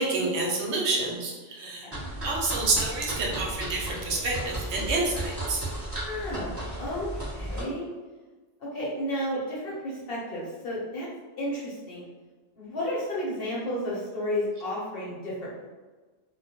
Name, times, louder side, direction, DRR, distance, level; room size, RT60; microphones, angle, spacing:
voice 1, 0.0-1.9 2.2-5.6, right 3 dB, 75° right, -1 dB, 0.9 m, -28 dB
voice 2, 1.8-2.1 6.0-7.9 8.6-11.1 11.4-12.1 12.6-15.7, left 1 dB, 55° left, -6 dB, 0.9 m, -32 dB
sound 1, 1.9-7.6, right 1 dB, 10° right, 1.0 m, -35 dB
2.2 x 2.1 x 2.8 m, 1.3 s
omnidirectional pair, 1.2 m